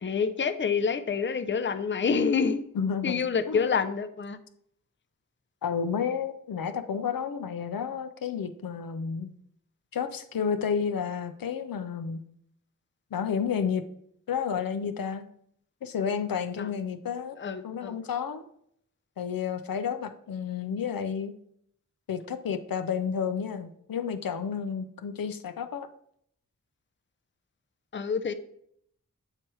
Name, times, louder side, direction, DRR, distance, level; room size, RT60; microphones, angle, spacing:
voice 1, 0.0-2.6 3.0-4.4 16.6-16.7 17.4-18.0 27.9-28.3, left 5 dB, 35° left, 11 dB, 0.5 m, -27 dB
voice 2, 2.8-3.2 3.5-3.6 5.6-9.3 9.9-12.2 13.1-13.8 14.3-15.3 15.8-17.4 17.6-18.4 19.2-21.3 22.1-25.9, left 7 dB, 80° left, 8 dB, 0.5 m, -31 dB
7.7 x 3.0 x 4.7 m, 0.69 s
cardioid pair, 40°, 34 cm